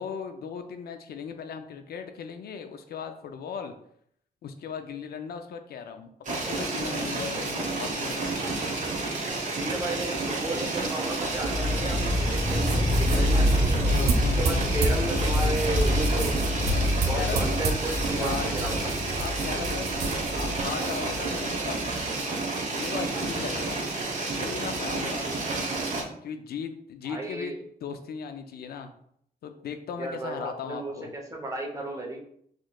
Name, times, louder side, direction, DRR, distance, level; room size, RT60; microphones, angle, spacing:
voice 1, 0.0-3.7 4.4-8.5 13.1-13.3 13.8-14.7 17.1-17.5 18.0-18.5 19.2-19.9 20.3-22.3 22.7-23.9 24.4-25.3 26.2-28.9 29.4-31.2, left 6 dB, 75° left, 7 dB, 0.4 m, -37 dB
sound 1, 6.2-26.0, right 3 dB, 50° right, 1.0 m, -30 dB
voice 2, 9.5-16.4 17.1-18.9 27.0-27.6 30.0-32.2, right 1 dB, 20° right, 0 dB, 0.8 m, -34 dB
sound 2, 11.4-21.2, left 1 dB, 20° left, 0.6 m, -27 dB
sound 3, 12.3-22.0, right 3 dB, 80° right, 0.6 m, -31 dB
4.1 x 3.1 x 2.3 m, 0.67 s
cardioid pair, 100°, 16 cm